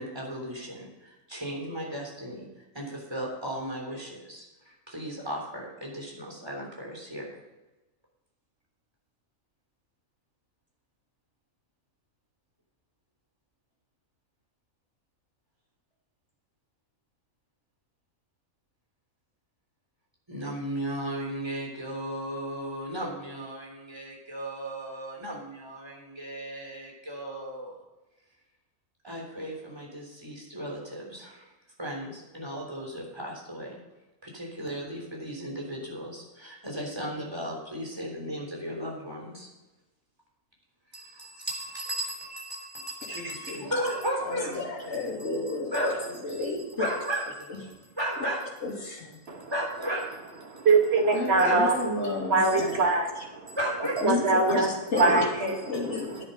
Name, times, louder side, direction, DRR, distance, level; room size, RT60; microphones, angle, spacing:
voice 1, 0.0-2.5 2.7-7.4 20.3-27.8 29.0-31.5 31.8-33.8 34.2-39.5 40.9-46.5 46.8-48.5 49.0-50.4 51.3-51.6 53.5-54.0 54.9-55.3, right 1 dB, 20° right, -2 dB, 3.6 m, -35 dB
voice 2, 43.1-43.6 44.3-45.9 46.2-46.9 47.5-47.6 48.6-49.1 51.1-52.8 54.0-56.2, left 3 dB, 55° left, -4 dB, 3.1 m, -31 dB
voice 3, 50.5-51.7 52.3-53.6 54.0-54.7 55.0-55.5, right 3 dB, 50° right, 2 dB, 1.8 m, -23 dB
10.5 x 10.0 x 5.4 m, 1.1 s
omnidirectional pair, 1.5 m